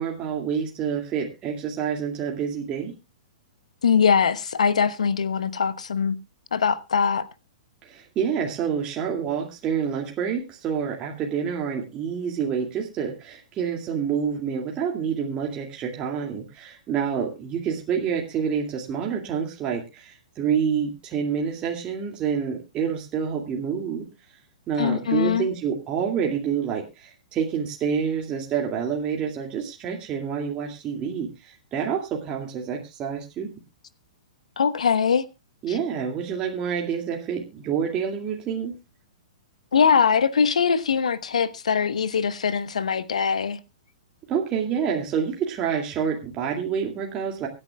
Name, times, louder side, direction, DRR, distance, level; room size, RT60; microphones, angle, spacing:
voice 1, 0.0-2.9 7.8-24.0 24.7-33.5 35.6-38.7 44.3-47.5, right 7 dB, 25° right, 2.3 m, -28 dB
voice 2, 3.8-6.2 6.5-7.3 24.8-25.5 34.6-35.2 39.7-43.6, left 6 dB, 65° left, 1.1 m, -22 dB
24.0 x 10.0 x 2.3 m
figure-of-eight pair, 110°, 4 cm